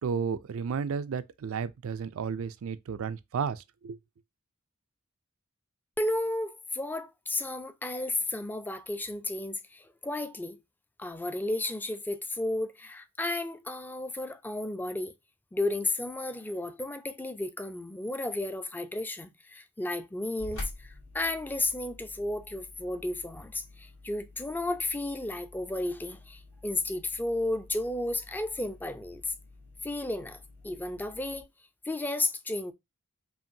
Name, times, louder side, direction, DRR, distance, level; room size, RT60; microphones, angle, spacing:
voice 1, 0.0-4.0, right 6 dB, 65° right, 0.4 m, -33 dB
voice 2, 6.0-10.6 11.0-15.1 15.5-29.3 29.8-31.5 31.8-32.7, left 2 dB, 10° left, 0.4 m, -33 dB
sound 1, 20.4-31.4, left 2 dB, 70° left, 2.0 m, -48 dB
5.6 x 2.5 x 2.6 m
head